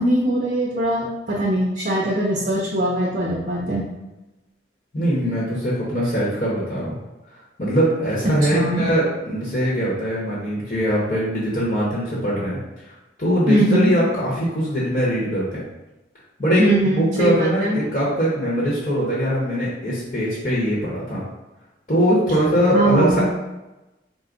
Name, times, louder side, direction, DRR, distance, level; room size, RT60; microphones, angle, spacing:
voice 1, 0.0-3.8 8.5-8.9 13.5-13.9 16.6-17.8 22.7-23.2, right 1 dB, 45° right, -5 dB, 0.6 m, -21 dB
voice 2, 4.9-6.9 7.6-15.6 16.4-21.2 21.9-23.2, equal, 40° left, -6 dB, 1.1 m, -21 dB
4.6 x 2.1 x 3.9 m, 1.0 s
head